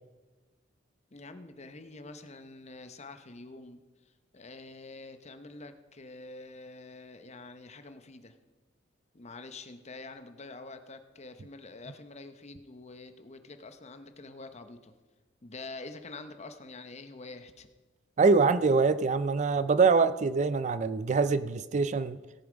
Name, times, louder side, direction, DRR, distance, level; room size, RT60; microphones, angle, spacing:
voice 1, 1.1-8.4 9.1-14.9 15.4-17.7, left 3 dB, 35° left, 9 dB, 0.8 m, -46 dB
voice 2, 18.2-22.2, right 4 dB, 35° right, 13 dB, 0.3 m, -24 dB
17.0 x 7.1 x 5.1 m, 1.2 s
head